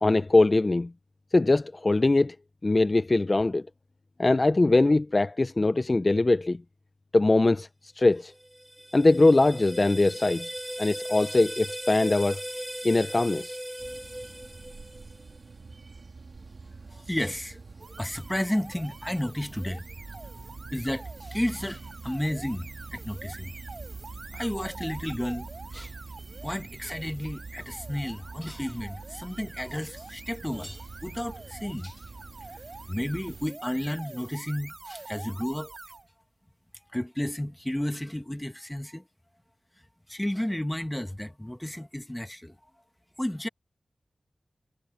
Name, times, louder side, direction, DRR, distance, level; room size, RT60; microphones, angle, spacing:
voice 1, 0.0-0.9 1.3-2.4 2.6-3.6 4.2-6.6 7.1-8.3 8.9-10.5 10.8-12.4 12.8-13.6, left 2 dB, 35° left, 0.4 m, -22 dB
sound 1, 8.3-15.4, right 1 dB, 10° right, 1.6 m, -38 dB
sound 2, 13.8-33.5, right 4 dB, 70° right, 1.8 m, -45 dB
voice 2, 16.9-17.6 18.0-23.5 24.3-25.9 26.4-32.0 32.9-35.7 36.9-39.0 40.1-42.6 43.2-43.5, left 1 dB, 10° left, 1.4 m, -32 dB
sound 3, 17.8-36.1, right 3 dB, 50° right, 4.0 m, -47 dB
wide cardioid pair, 100°, 0 cm